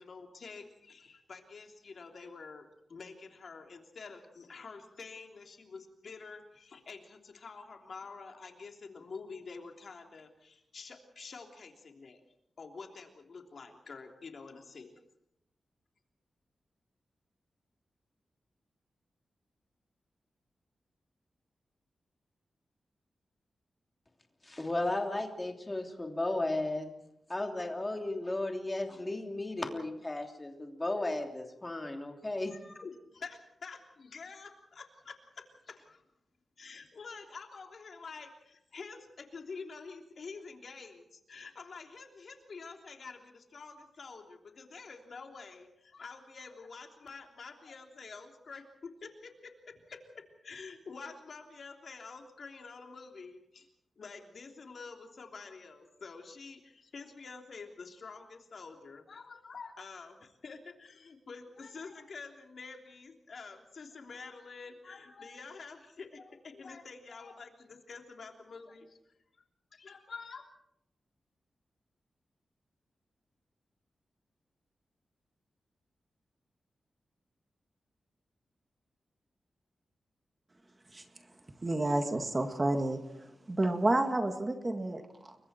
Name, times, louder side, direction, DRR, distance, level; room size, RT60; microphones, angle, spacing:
voice 1, 0.0-12.2 12.6-14.9 32.5-36.0 36.6-53.7 54.0-69.0 69.7-70.5, left 4 dB, 55° left, 3 dB, 3.3 m, -48 dB
voice 2, 24.4-26.9 27.3-32.5, left 2 dB, 15° left, 3 dB, 3.1 m, -34 dB
voice 3, 81.6-85.4, right 2 dB, 25° right, 6 dB, 1.9 m, -30 dB
30.0 x 23.0 x 4.4 m, 0.80 s
wide cardioid pair, 145°, 0 cm